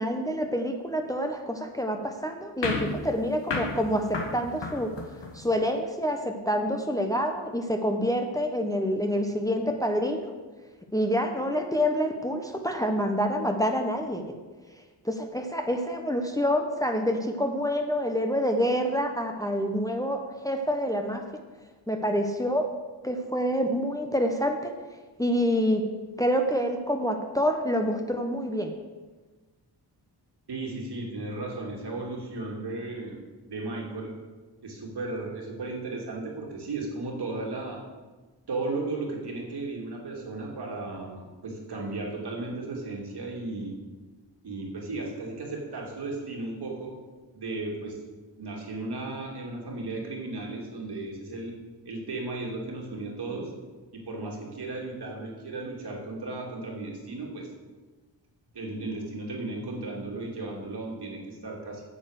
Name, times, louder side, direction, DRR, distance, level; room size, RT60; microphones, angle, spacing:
voice 1, 0.0-4.9 5.3-10.3 10.9-14.3 15.0-21.2 21.9-22.7 23.0-24.7 25.2-25.8 26.2-28.7, equal, 10° left, 3 dB, 1.0 m, -27 dB
sound 1, 2.6-5.5, left 3 dB, 75° left, 1.9 m, -33 dB
voice 2, 30.5-33.2 33.5-34.1 34.6-37.8 38.5-43.7 44.4-46.9 47.3-48.0 48.4-51.5 51.8-53.5 53.9-57.5 58.5-61.8, right 2 dB, 60° right, -1 dB, 2.6 m, -35 dB
8.9 x 7.3 x 6.4 m, 1.3 s
cardioid pair, 80°, 43 cm